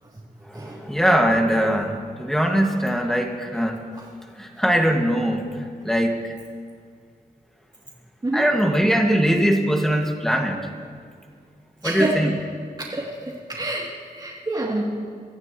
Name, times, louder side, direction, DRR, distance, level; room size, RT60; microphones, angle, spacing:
voice 1, 0.5-3.8 4.3-6.3 8.3-10.6 11.8-12.3, equal, 5° left, 2 dB, 2.0 m, -21 dB
voice 2, 11.8-12.3 12.8-14.8, right 1 dB, 25° right, -7 dB, 3.0 m, -28 dB
28.0 x 14.5 x 3.2 m, 2.1 s
wide cardioid pair, 105°, 16 cm